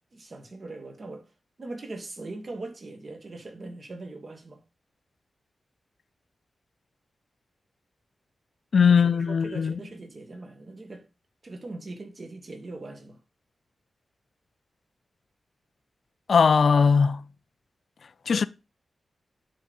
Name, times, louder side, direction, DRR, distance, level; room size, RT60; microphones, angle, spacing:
voice 1, 0.1-1.2 1.6-4.6 8.9-11.0 11.4-13.2, right 2 dB, 40° right, 1.5 m, -40 dB
voice 2, 8.7-9.8 16.3-17.2 18.3-18.5, left 6 dB, 55° left, 0.4 m, -20 dB
9.3 x 3.8 x 5.3 m
wide cardioid pair, 170°, 0 cm